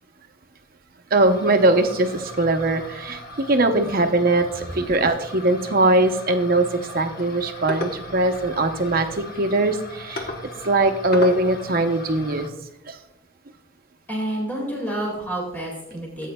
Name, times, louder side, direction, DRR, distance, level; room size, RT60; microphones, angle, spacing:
voice 1, 1.1-6.7 6.9-10.3 10.6-12.5 12.9-13.0, right 2 dB, 45° right, 6 dB, 0.7 m, -21 dB
sound 1, 1.2-12.5, left 1 dB, 50° left, 1.0 m, -37 dB
voice 2, 14.1-16.3, right 1 dB, 10° left, -3 dB, 2.0 m, -29 dB
14.5 x 8.3 x 2.2 m, 0.83 s
head